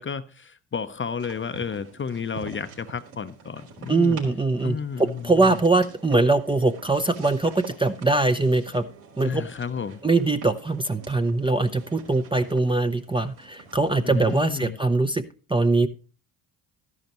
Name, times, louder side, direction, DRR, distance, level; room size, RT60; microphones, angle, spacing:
voice 1, 0.0-4.2 4.6-5.6 9.2-10.0 14.0-14.8, left 6 dB, 25° left, 0.7 m, -32 dB
sound 1, 1.2-14.5, right 4 dB, 70° right, 4.1 m, -46 dB
voice 2, 3.9-8.8 9.2-9.4 10.0-15.2 15.5-15.9, right 3 dB, 10° right, 0.6 m, -22 dB
12.5 x 11.0 x 3.0 m
hypercardioid pair, 60°, 48 cm